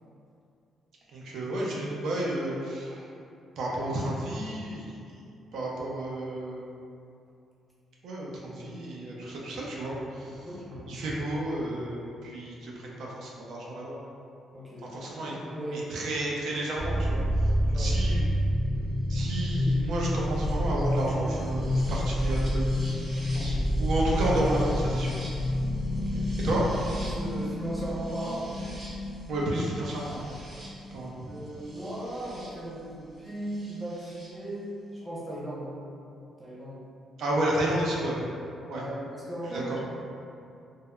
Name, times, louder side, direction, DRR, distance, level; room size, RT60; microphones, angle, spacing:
voice 1, 1.1-3.0 3.6-4.9 5.5-6.7 8.0-10.3 10.9-14.0 14.9-15.4 15.7-17.2 17.6-18.2 19.1-22.7 23.3-25.1 26.4-26.6 29.3-30.2 30.9-31.3 37.2-38.2 38.7-38.8 39.5-39.6, right 1 dB, 70° right, -4 dB, 0.5 m, -31 dB
voice 2, 10.4-10.9 14.5-16.0 17.7-18.1 23.3-23.6 25.8-26.4 27.0-28.7 31.2-35.8 36.4-36.9 38.7-39.9, right 1 dB, 10° right, -7 dB, 0.6 m, -37 dB
sound 1, 16.8-32.5 33.7-34.3, equal, 45° right, 0.8 m, -29 dB
3.4 x 2.0 x 2.2 m, 2.5 s
cardioid pair, 90°, 0 cm